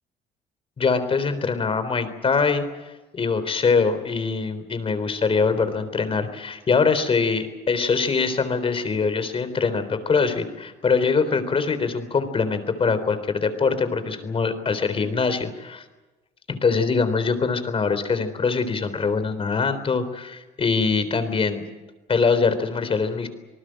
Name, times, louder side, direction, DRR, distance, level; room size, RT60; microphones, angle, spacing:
voice 1, 0.8-2.7 3.1-15.8 16.5-21.6 22.1-23.3, left 5 dB, 35° left, 11 dB, 3.8 m, -23 dB
27.0 x 19.5 x 7.8 m, 1.1 s
cardioid pair, 110°, 17 cm